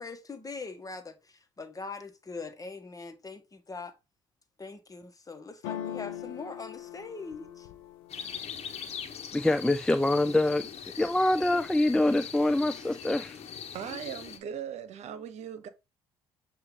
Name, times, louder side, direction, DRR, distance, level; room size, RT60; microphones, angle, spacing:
voice 1, 0.0-3.9 4.6-7.7, left 4 dB, 30° left, 1.6 m, -42 dB
sound 1, 5.6-9.5 10.0-10.6 10.9-11.6, left 11 dB, 85° left, 0.8 m, -42 dB
sound 2, 8.1-14.4, left 7 dB, 55° left, 1.4 m, -41 dB
voice 2, 9.3-10.7 11.0-13.4, left 1 dB, 5° left, 0.5 m, -25 dB
voice 3, 13.7-15.7, right 9 dB, 60° right, 1.1 m, -39 dB
8.0 x 3.0 x 5.2 m
hypercardioid pair, 55°, 13 cm